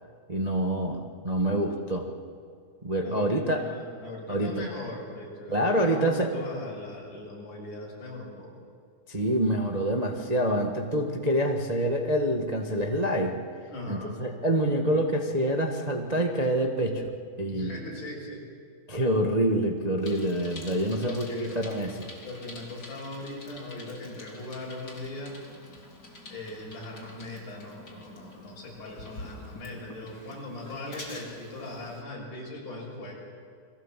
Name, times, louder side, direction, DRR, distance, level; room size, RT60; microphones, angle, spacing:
voice 1, 0.3-2.1 2.8-3.6 4.3-4.5 5.5-6.3 9.1-13.4 13.9-17.7 18.9-22.1, right 1 dB, 30° right, 2 dB, 0.7 m, -26 dB
voice 2, 3.0-8.5 13.7-14.2 17.5-18.4 20.9-21.6 22.2-25.5 26.3-33.1, left 2 dB, 85° left, -1 dB, 7.6 m, -39 dB
Bicycle, 20.0-32.0, left 2 dB, 30° left, 3.9 m, -47 dB
29.5 x 22.0 x 7.5 m, 2.2 s
omnidirectional pair, 3.5 m